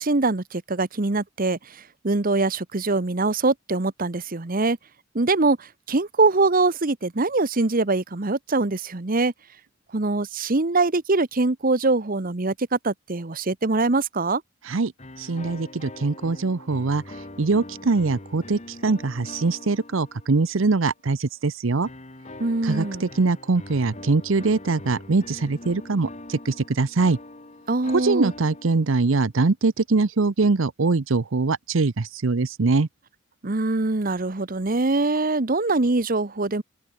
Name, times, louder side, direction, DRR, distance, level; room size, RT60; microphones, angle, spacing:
voice 1, 0.0-1.6 2.0-4.8 5.1-9.3 9.9-14.4 22.4-23.0 27.7-28.3 33.4-36.6, right 3 dB, 40° right, 1.0 m, -23 dB
sound 1, 15.0-20.8 21.8-29.2, left 1 dB, 35° left, 2.6 m, -42 dB
voice 2, 15.2-21.9 22.6-27.2 27.9-32.9, right 3 dB, 65° right, 0.7 m, -23 dB
open air
head